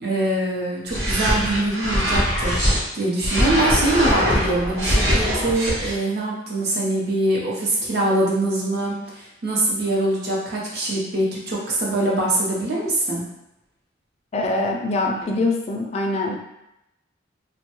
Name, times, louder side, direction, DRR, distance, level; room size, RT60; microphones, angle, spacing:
voice 1, 0.0-13.2, right 1 dB, 55° right, -4 dB, 0.7 m, -23 dB
sound 1, 0.9-2.8 3.2-5.9, equal, 75° right, 1.0 m, -21 dB
voice 2, 14.3-16.4, left 2 dB, 35° left, 1 dB, 0.3 m, -23 dB
3.0 x 2.2 x 2.9 m, 0.87 s
head